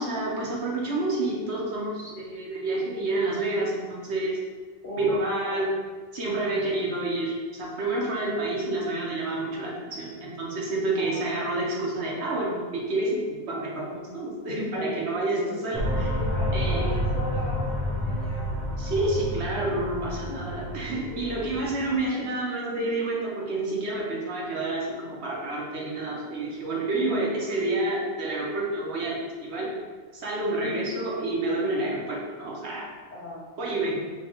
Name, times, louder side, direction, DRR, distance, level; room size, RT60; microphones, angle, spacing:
voice 1, 0.0-4.4 5.0-5.7 6.1-16.2 16.5-16.8 18.8-29.7 30.1-32.9 33.6-34.1, right 2 dB, 75° right, -3 dB, 1.1 m, -29 dB
voice 2, 4.8-5.7 11.0-11.3 14.8-15.6 16.2-18.7 20.3-20.4 21.1-21.7 26.9-27.3 30.6-30.9 33.1-33.4, left 1 dB, 90° left, -8 dB, 1.8 m, -38 dB
sound 1, 15.7-22.0, equal, ahead, 0.5 m, -29 dB
5.3 x 2.3 x 2.9 m, 1.4 s
omnidirectional pair, 1.1 m